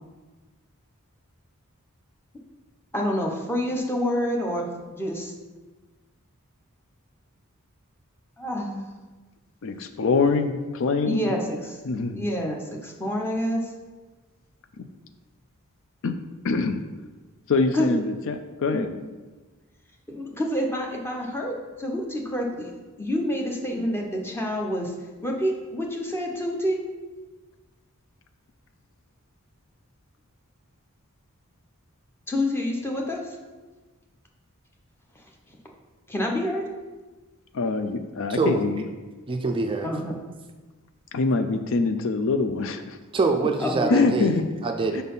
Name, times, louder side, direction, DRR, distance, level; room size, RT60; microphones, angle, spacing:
voice 1, 2.9-5.3 8.4-8.8 11.0-11.8 12.1-13.6 17.7-17.9 18.7-18.8 20.1-22.7 23.0-24.9 25.2-26.8 32.3-33.2 36.1-36.6 39.8-40.1 43.6-44.0, equal, 10° left, 0 dB, 0.8 m, -27 dB
voice 2, 9.6-11.3 11.9-12.2 14.8-14.9 16.0-16.1 16.4-16.8 17.5-18.9 37.5-38.8 41.1-43.0 43.4-43.5 43.9-44.4 44.9-45.0, left 4 dB, 65° left, 9 dB, 0.4 m, -24 dB
voice 3, 38.3-38.6 39.3-39.9 43.1-45.0, right 3 dB, 25° right, 4 dB, 0.4 m, -25 dB
5.5 x 4.1 x 5.5 m, 1.3 s
head